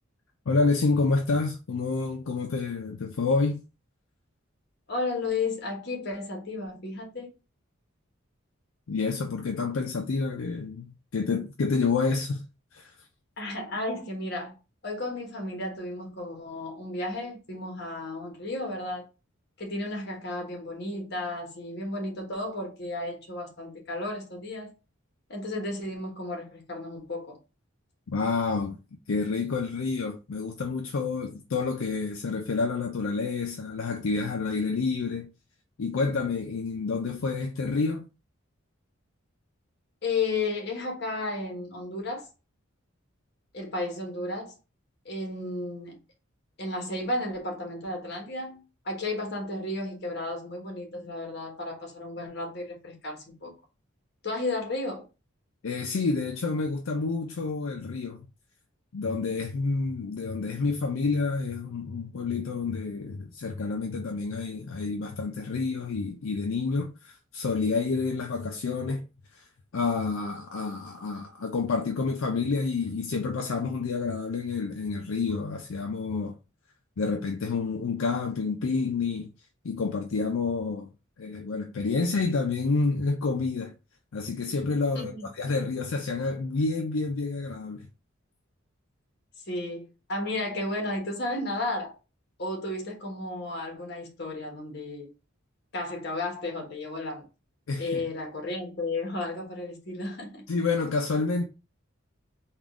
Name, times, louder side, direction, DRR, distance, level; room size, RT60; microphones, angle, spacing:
voice 1, 0.5-3.6 8.9-12.4 12.7-12.9 28.1-28.8 29.1-35.3 35.8-38.1 55.6-58.3 58.9-69.1 69.4-69.5 69.7-76.4 77.0-79.3 79.6-80.9 81.2-83.7 84.1-87.9 97.7-98.1 100.5-101.5, left 4 dB, 80° left, 0.5 m, -29 dB
voice 2, 4.9-7.3 13.4-14.5 14.8-19.0 19.6-24.7 25.3-27.4 40.0-42.3 43.5-44.6 45.0-46.0 46.6-53.5 54.2-55.0 84.9-85.3 89.5-91.9 92.4-95.1 95.7-97.2 97.8-100.4, left 2 dB, 55° left, 1.2 m, -33 dB
3.7 x 2.3 x 3.5 m
head